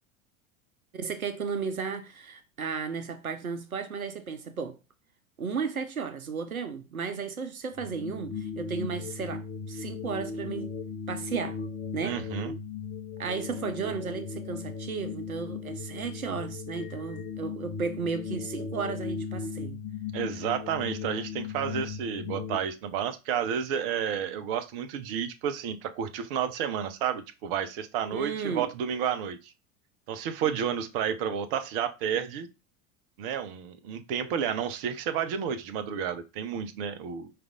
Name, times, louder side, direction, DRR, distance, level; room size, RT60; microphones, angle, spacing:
voice 1, 0.9-4.8 5.4-10.7 11.1-11.6 11.9-12.2 13.2-19.8 28.1-28.7, right 5 dB, 85° right, 0.5 m, -34 dB
sound 1, 7.7-22.6, left 5 dB, 35° left, 0.6 m, -37 dB
voice 2, 12.0-12.5 20.1-29.5 30.1-32.5 33.2-37.3, right 8 dB, 45° right, 0.7 m, -31 dB
4.8 x 2.5 x 3.6 m
figure-of-eight pair, 80°, 41 cm